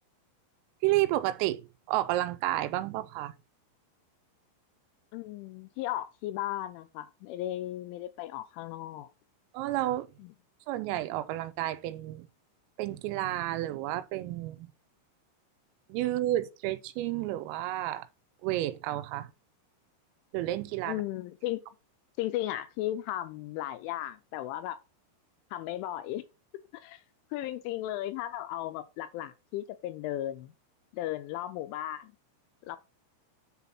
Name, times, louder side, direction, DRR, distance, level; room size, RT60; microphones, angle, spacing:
voice 1, 0.8-3.3 9.5-10.1 10.7-12.3 12.8-14.7 15.9-18.1 18.4-19.3 20.3-21.0, right 15 dB, 90° right, 3.3 m, -31 dB
voice 2, 5.1-9.1 20.9-21.6 22.2-24.8 25.5-26.2 26.7-27.0 27.3-30.5 30.9-32.1 32.7-32.8, left 14 dB, 85° left, 2.8 m, -35 dB
9.8 x 4.1 x 4.2 m
omnidirectional pair, 5.9 m